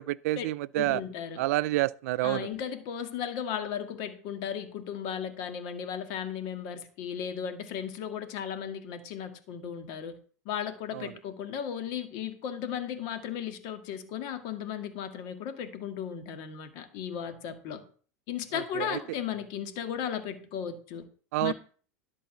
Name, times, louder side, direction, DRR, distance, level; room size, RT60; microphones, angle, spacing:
voice 1, 0.0-1.0 1.4-2.5 10.9-11.1 18.5-19.0 21.3-21.5, right 17 dB, 70° right, 0.4 m, -28 dB
voice 2, 0.8-1.4 2.2-10.1 10.5-17.8 18.3-21.0 21.4-21.5, left 8 dB, 55° left, 1.8 m, -35 dB
11.5 x 4.1 x 7.3 m
hypercardioid pair, 100°, 9 cm